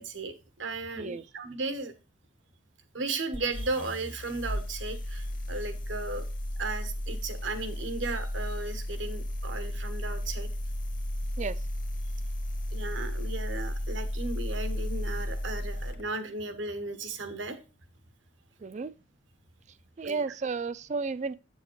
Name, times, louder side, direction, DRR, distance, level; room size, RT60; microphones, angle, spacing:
voice 1, 0.0-1.9 2.9-6.2 6.6-10.5 12.7-17.6 20.0-20.2, right 3 dB, 85° right, 1.3 m, -35 dB
sound 1, 3.3-16.0, equal, 45° left, 1.1 m, -34 dB
voice 2, 18.6-18.9 20.0-21.3, right 4 dB, 40° right, 0.4 m, -32 dB
8.0 x 7.0 x 3.1 m
head